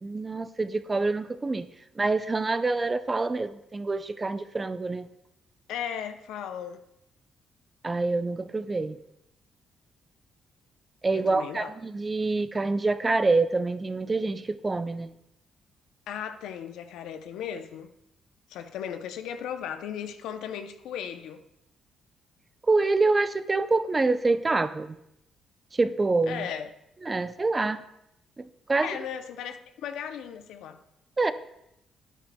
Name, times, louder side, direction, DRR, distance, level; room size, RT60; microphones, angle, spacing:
voice 1, 0.0-1.7 2.0-5.1 7.8-9.0 11.0-15.1 22.7-25.0 25.7-26.5 27.0-27.8 28.4-29.0 31.2-31.3, right 3 dB, 25° right, 0.5 m, -26 dB
voice 2, 5.7-6.8 11.1-11.7 16.1-17.9 18.5-21.4 26.3-26.7 28.8-30.8, left 8 dB, 85° left, 0.6 m, -36 dB
12.5 x 9.1 x 2.2 m
cardioid pair, 90°, 0 cm